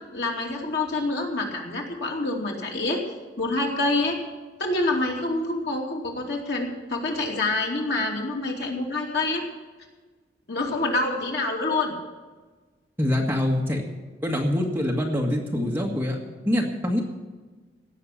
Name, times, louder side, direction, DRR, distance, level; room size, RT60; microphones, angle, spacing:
voice 1, 0.1-3.0 3.4-4.2 4.6-9.4 10.5-11.9, left 2 dB, 60° left, 0 dB, 2.7 m, -26 dB
voice 2, 13.0-13.8 14.2-16.2 16.4-17.0, left 1 dB, 10° right, 0 dB, 1.8 m, -24 dB
17.5 x 6.7 x 8.5 m, 1.3 s
head